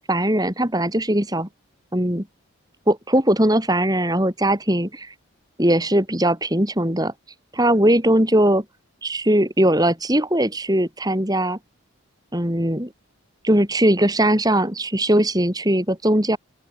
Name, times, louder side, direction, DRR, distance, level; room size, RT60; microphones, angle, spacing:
voice 1, 0.1-1.5 1.9-2.3 2.9-5.1 5.6-7.1 7.5-8.6 9.0-11.6 12.3-12.9 13.4-16.4, right 1 dB, 15° right, 4.8 m, -20 dB
open air
head